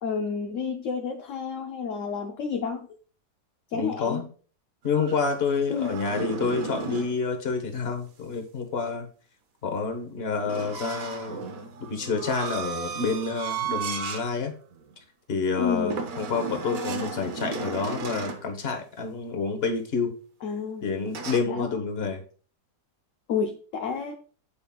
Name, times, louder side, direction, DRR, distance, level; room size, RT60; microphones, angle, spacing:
voice 1, 0.0-2.9 3.7-4.2 5.7-6.0 15.6-16.0 20.4-20.9 21.5-21.7 23.3-24.1, left 6 dB, 60° left, 4 dB, 0.9 m, -30 dB
voice 2, 3.7-4.2 4.8-9.1 9.6-11.5 11.9-14.5 15.3-20.1 20.8-22.2, left 4 dB, 40° left, 4 dB, 1.2 m, -28 dB
sound 1, 4.9-7.2 10.5-14.3 14.7-14.9 15.9-18.5 21.1-21.4, right 5 dB, 65° right, 1.2 m, -34 dB
8.5 x 5.3 x 2.3 m, 0.41 s
omnidirectional pair, 1.7 m